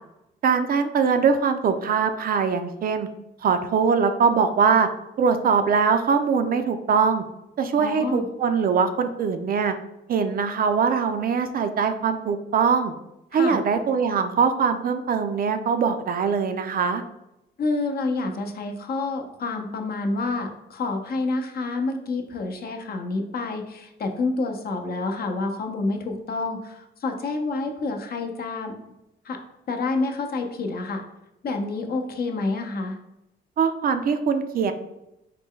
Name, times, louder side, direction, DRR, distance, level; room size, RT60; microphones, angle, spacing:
voice 1, 0.4-3.1 3.4-4.9 5.2-7.2 7.6-9.7 10.1-12.9 13.3-17.0 33.6-34.7, right 6 dB, 50° right, 8 dB, 0.4 m, -22 dB
voice 2, 7.8-8.2 13.3-13.6 17.6-28.7 29.2-29.4 29.7-31.0 31.4-33.0, left 3 dB, 50° left, 4 dB, 0.6 m, -28 dB
4.0 x 2.2 x 3.6 m, 0.89 s
cardioid pair, 90°, 20 cm